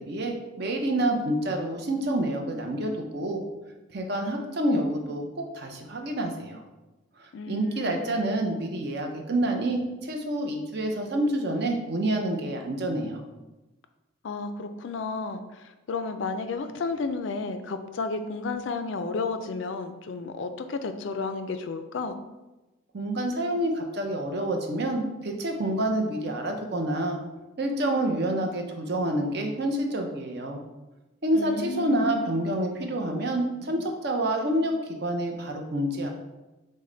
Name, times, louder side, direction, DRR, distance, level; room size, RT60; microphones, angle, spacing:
voice 1, 0.0-3.4 3.9-6.6 7.2-13.2 22.9-27.2 27.6-30.6 31.2-36.1, right 1 dB, 50° right, 3 dB, 0.6 m, -28 dB
voice 2, 7.3-8.0 14.2-22.1 31.3-32.0, left 4 dB, 65° left, 9 dB, 0.4 m, -32 dB
6.4 x 2.2 x 3.8 m, 1.1 s
head